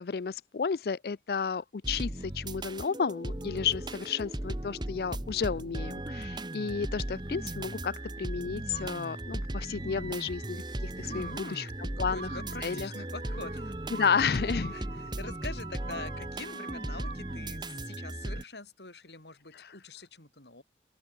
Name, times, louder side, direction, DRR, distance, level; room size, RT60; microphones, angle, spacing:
voice 1, 0.0-12.3 12.6-12.9 13.9-14.7 19.5-19.7, left 6 dB, 60° left, 0.4 m, -32 dB
sound 1, 1.8-18.4, right 1 dB, 25° right, 1.3 m, -37 dB
sound 2, 8.7-9.5 9.9-10.4 11.1-17.4, right 4 dB, 70° right, 4.8 m, -47 dB
voice 2, 11.0-11.7 12.0-14.0 14.5-20.6, left 3 dB, 80° left, 5.3 m, -45 dB
open air
head